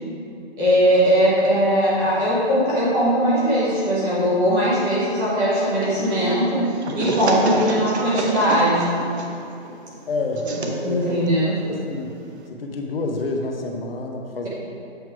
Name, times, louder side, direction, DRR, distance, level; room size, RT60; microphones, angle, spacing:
voice 1, 0.6-9.0 10.8-11.6, equal, 10° right, -9 dB, 0.8 m, -20 dB
sound 1, 5.8-12.5, right 2 dB, 80° right, 0.9 m, -29 dB
voice 2, 10.1-11.3 11.7-12.2 12.5-14.5, left 2 dB, 60° left, 2 dB, 0.8 m, -28 dB
7.8 x 3.1 x 4.7 m, 2.6 s
hypercardioid pair, 160°, 32 cm